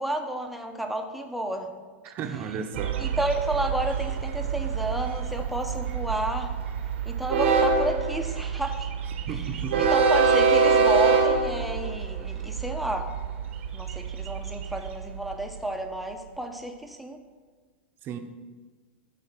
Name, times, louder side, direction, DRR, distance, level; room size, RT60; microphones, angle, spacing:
voice 1, 0.0-1.7 3.0-6.5 7.1-8.9 9.3-13.1 13.7-17.2, right 1 dB, ahead, 4 dB, 0.8 m, -31 dB
voice 2, 2.0-3.0 9.2-9.8 18.0-18.2, right 6 dB, 35° right, 6 dB, 0.9 m, -34 dB
Train, 2.7-15.7, right 5 dB, 85° right, 1.2 m, -25 dB
12.0 x 4.1 x 6.0 m, 1.4 s
supercardioid pair, 140°, 6 cm